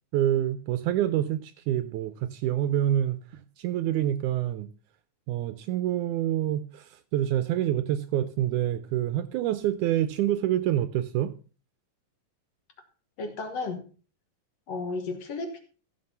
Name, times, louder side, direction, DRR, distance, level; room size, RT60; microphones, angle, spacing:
voice 1, 0.1-4.7 5.3-11.3, right 12 dB, 75° right, 12 dB, 1.9 m, -27 dB
voice 2, 13.2-13.8 14.7-15.6, left 3 dB, 60° left, 6 dB, 2.1 m, -33 dB
15.0 x 6.0 x 5.6 m, 0.37 s
omnidirectional pair, 4.0 m